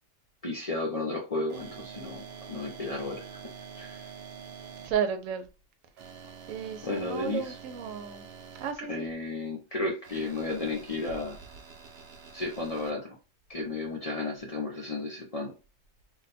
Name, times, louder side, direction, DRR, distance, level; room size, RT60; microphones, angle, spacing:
voice 1, 0.4-3.2 3.8-4.1 6.8-7.6 8.9-11.4 12.3-13.2 13.5-15.5, left 3 dB, 40° left, 0.5 m, -33 dB
sound 1, 1.5-4.9 6.0-8.7 10.0-12.9, right 7 dB, 60° right, 0.7 m, -46 dB
voice 2, 4.8-5.5 6.5-8.3 8.6-9.0, right 7 dB, 90° right, 1.0 m, -33 dB
2.5 x 2.2 x 4.0 m
omnidirectional pair, 1.3 m